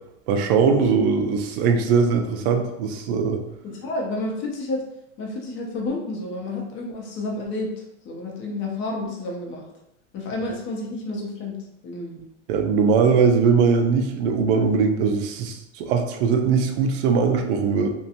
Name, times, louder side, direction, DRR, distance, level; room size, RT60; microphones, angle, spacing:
voice 1, 0.3-3.4 12.5-17.9, right 5 dB, 50° right, 5 dB, 0.5 m, -20 dB
voice 2, 3.6-4.8 5.2-9.6 10.1-11.6 11.8-12.2, left 2 dB, 30° left, -1 dB, 0.7 m, -30 dB
2.8 x 2.2 x 2.5 m, 0.85 s
supercardioid pair, 140°, 37 cm